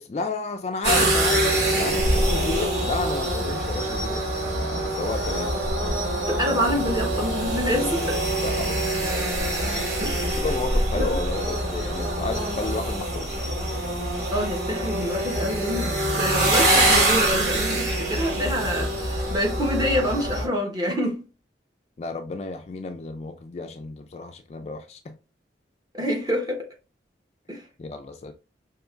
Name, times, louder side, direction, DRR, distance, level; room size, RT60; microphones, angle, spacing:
voice 1, 0.0-1.5 1.7-5.5 8.3-9.1 10.2-13.3 13.7-13.8 22.0-25.1 27.8-28.3, left 3 dB, 35° left, 0.3 m, -32 dB
sound 1, 0.8-20.5, right 1 dB, 70° right, 2.2 m, -24 dB
voice 2, 6.4-8.2 10.0-10.5 10.9-11.2 14.3-21.2 25.9-26.7 27.5-27.6, equal, 20° right, 1.0 m, -27 dB
4.9 x 2.9 x 2.4 m
head